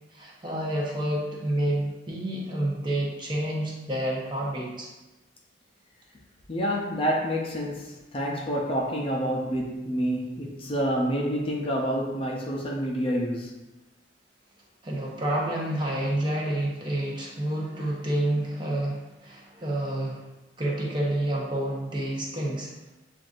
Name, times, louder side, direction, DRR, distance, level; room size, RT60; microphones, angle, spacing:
voice 1, 0.1-4.9 14.8-20.3 20.6-22.7, right 1 dB, 25° right, 0.8 m, -29 dB
voice 2, 6.5-13.6, equal, 30° left, 0.5 m, -28 dB
7.5 x 2.5 x 2.5 m
head